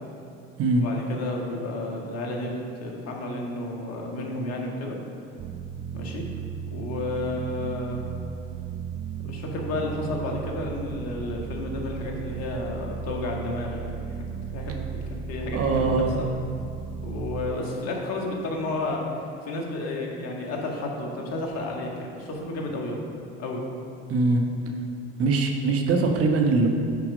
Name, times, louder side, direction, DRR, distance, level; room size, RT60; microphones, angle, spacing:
voice 1, 0.8-5.0 5.9-6.3 6.7-8.0 9.2-14.2 14.5-14.8 15.1-15.9 17.0-19.0 19.5-23.0 23.4-23.6, left 2 dB, 50° left, 0 dB, 1.6 m, -32 dB
sound 1, 5.4-17.6, right 7 dB, 30° right, 0.5 m, -35 dB
voice 2, 15.5-16.2 24.1-24.4 25.2-26.7, right 3 dB, 45° right, 3 dB, 1.1 m, -22 dB
9.3 x 4.6 x 5.1 m, 2.6 s
hypercardioid pair, 75°, 32 cm